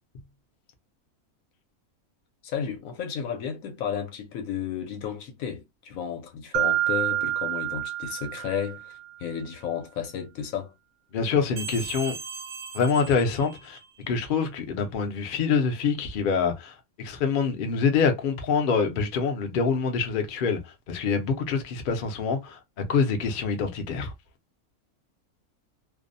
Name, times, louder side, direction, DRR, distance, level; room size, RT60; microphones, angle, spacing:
voice 1, 2.4-10.7, left 8 dB, 75° left, 1.0 m, -33 dB
Mallet percussion, 6.5-9.1, right 14 dB, 80° right, 1.0 m, -28 dB
voice 2, 11.1-12.1 12.7-13.8 14.1-20.6 20.9-22.6 22.9-24.1, left 5 dB, 55° left, 0.6 m, -25 dB
sound 1, 11.6-14.1, right 5 dB, 45° right, 0.7 m, -39 dB
2.6 x 2.0 x 2.5 m
omnidirectional pair, 1.5 m